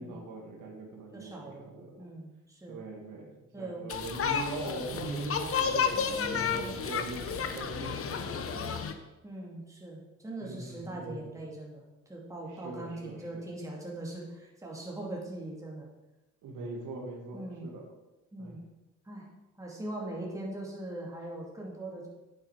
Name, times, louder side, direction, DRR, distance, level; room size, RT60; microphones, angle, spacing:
voice 1, 0.0-2.1 2.7-6.0 6.3-8.8 10.4-11.3 12.6-13.4 16.4-17.8 18.4-18.5, right 2 dB, 80° right, -1 dB, 2.1 m, -41 dB
voice 2, 1.1-1.7 2.0-2.8 3.5-3.9 5.9-6.9 9.2-15.9 17.3-17.7 18.3-18.6 19.0-19.3 19.5-22.1, right 1 dB, 10° right, -3 dB, 2.5 m, -41 dB
sound 1, 3.9-8.9, left 6 dB, 50° left, 1.0 m, -32 dB
9.3 x 8.3 x 5.0 m, 1.0 s
cardioid pair, 90°, 30 cm